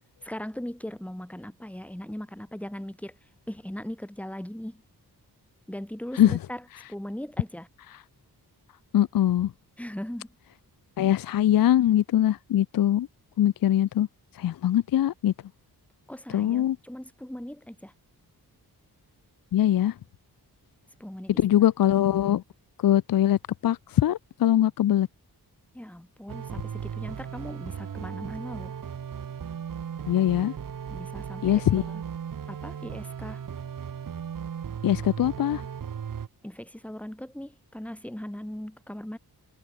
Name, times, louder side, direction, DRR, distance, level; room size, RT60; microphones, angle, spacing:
voice 1, 0.2-4.8 5.7-7.7 9.8-10.3 16.1-17.9 21.0-21.4 25.7-28.8 30.9-32.0 32.5-33.5 36.4-39.2, equal, 5° left, 4.6 m, -39 dB
voice 2, 8.9-9.5 11.0-13.1 13.4-14.1 14.3-15.3 16.3-16.8 19.5-19.9 21.4-22.4 22.8-25.1 30.1-30.5 31.4-31.8 34.8-35.6, left 12 dB, 60° left, 0.5 m, -22 dB
sound 1, 26.3-36.3, right 8 dB, 55° right, 1.2 m, -36 dB
wide cardioid pair, 140°, 39 cm